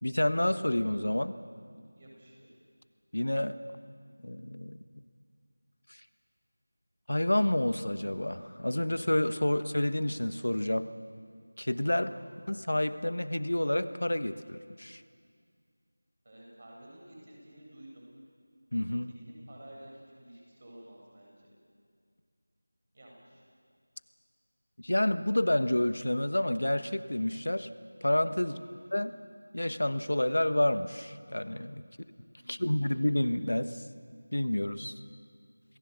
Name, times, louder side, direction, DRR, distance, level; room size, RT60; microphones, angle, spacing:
voice 1, 0.0-1.3 3.1-3.6 4.2-4.8 7.1-10.9 11.6-12.1 12.5-15.0 18.7-19.1 24.8-27.7 28.0-28.6 28.9-29.1 29.5-31.8 32.5-33.8 34.3-34.9, left 1 dB, 70° left, 12 dB, 1.2 m, -29 dB
voice 2, 1.8-2.5 11.9-12.3 16.2-18.0 19.2-21.5 22.9-23.4 28.4-28.6 32.4-32.7, right 1 dB, 40° right, -2 dB, 7.9 m, -52 dB
28.0 x 19.5 x 7.0 m, 2.1 s
figure-of-eight pair, 170°, 0 cm